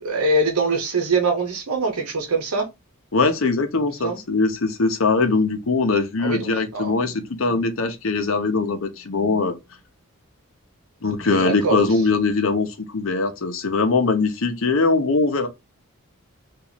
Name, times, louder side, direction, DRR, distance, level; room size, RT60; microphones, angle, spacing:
voice 1, 0.0-2.7 4.0-4.2 6.2-7.0 11.3-11.9, right 3 dB, 85° right, 0.9 m, -23 dB
voice 2, 3.1-9.5 11.0-15.5, left 3 dB, 65° left, 0.7 m, -21 dB
2.9 x 2.5 x 4.0 m
head